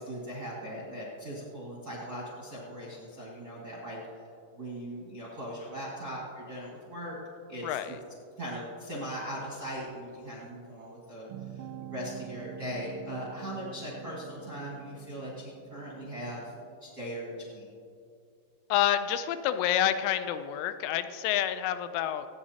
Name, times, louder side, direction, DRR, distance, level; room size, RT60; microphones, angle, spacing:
voice 1, 0.0-4.3 4.5-7.2 7.5-8.0 8.4-16.5 16.8-17.6, equal, 55° right, -6 dB, 1.0 m, -39 dB
voice 2, 7.6-8.0 18.7-22.3, left 11 dB, 85° left, 11 dB, 3.1 m, -28 dB
sound 1, 11.3-16.8, right 10 dB, 85° right, 2.7 m, -46 dB
25.5 x 9.3 x 2.9 m, 2.5 s
omnidirectional pair, 5.5 m